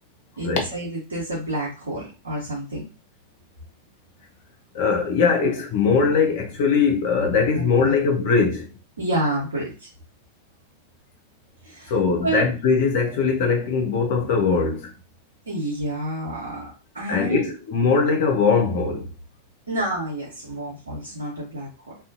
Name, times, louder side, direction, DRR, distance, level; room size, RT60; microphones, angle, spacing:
voice 1, 0.4-2.8 7.5-7.9 9.0-9.9 11.6-11.9 12.2-12.5 15.5-17.5 19.7-21.7, right 1 dB, 75° right, 0.9 m, -29 dB
voice 2, 4.7-8.7 11.9-14.9 17.1-19.1, left 5 dB, 50° left, 0.8 m, -21 dB
2.6 x 2.4 x 2.6 m
figure-of-eight pair, 90°, 0 cm